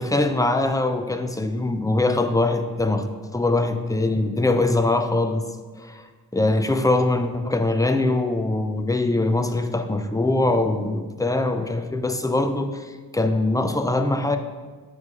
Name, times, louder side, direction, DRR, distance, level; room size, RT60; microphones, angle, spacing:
voice 1, 0.0-3.1 3.3-5.4 5.7-14.4, left 2 dB, 10° left, 7 dB, 0.4 m, -22 dB
7.3 x 3.2 x 5.3 m, 1.4 s
wide cardioid pair, 80°, 39 cm